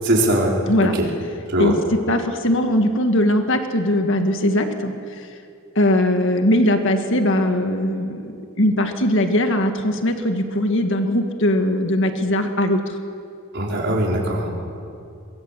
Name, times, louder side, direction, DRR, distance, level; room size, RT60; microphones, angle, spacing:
voice 1, 0.0-0.5 0.8-0.9 1.5-1.7 13.5-14.5, right 1 dB, 55° right, -2 dB, 5.0 m, -20 dB
voice 2, 1.6-5.3 5.8-8.2 8.6-13.0, left 1 dB, 60° left, 5 dB, 1.9 m, -20 dB
24.0 x 23.0 x 7.6 m, 2.5 s
head